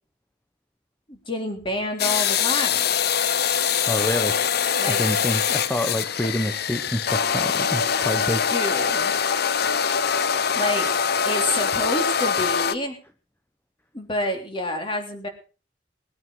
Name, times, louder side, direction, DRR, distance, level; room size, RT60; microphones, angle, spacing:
voice 1, 1.1-2.9 4.7-5.0 8.5-9.3 10.5-10.9 11.2-13.0 13.9-15.3, left 1 dB, 30° left, 4 dB, 3.4 m, -28 dB
sound 1, 2.0-12.7, left 7 dB, 60° left, 0.7 m, -23 dB
voice 2, 3.9-4.4 4.9-8.5, equal, 10° left, 8 dB, 0.9 m, -27 dB
20.5 x 9.5 x 4.6 m, 0.35 s
head